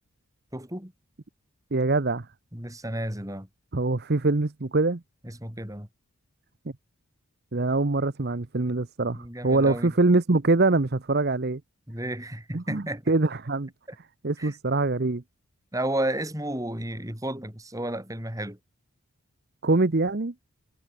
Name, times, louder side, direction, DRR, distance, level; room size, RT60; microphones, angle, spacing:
voice 1, 0.5-0.9 2.5-3.5 5.2-5.9 9.1-9.9 11.9-13.0 13.9-14.0 14.4-14.6 15.7-18.6, right 1 dB, 15° right, 4.2 m, -32 dB
voice 2, 1.7-2.3 3.7-5.0 7.5-11.6 12.5-13.7 14.2-15.2 19.6-20.3, right 3 dB, 45° right, 0.9 m, -24 dB
head